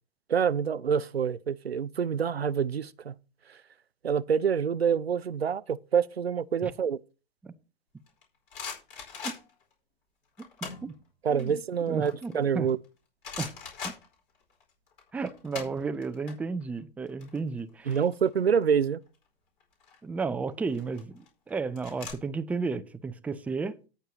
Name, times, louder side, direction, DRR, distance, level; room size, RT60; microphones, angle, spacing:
voice 1, 0.3-3.1 4.0-7.0 11.2-12.8 17.9-19.0, right 7 dB, 85° right, 0.5 m, -26 dB
sound 1, 8.1-9.7 10.4-10.9 11.3-12.8 13.2-14.6 14.9-16.3 16.6-16.8 17.1-18.6 19.6-20.0 20.7-22.1, left 6 dB, 60° left, 4.8 m, -41 dB
voice 2, 11.9-12.7 13.4-13.5 13.8-13.9 15.1-18.0 20.0-23.8, right 4 dB, 5° right, 0.5 m, -33 dB
18.0 x 6.6 x 2.9 m
figure-of-eight pair, 100°, 30 cm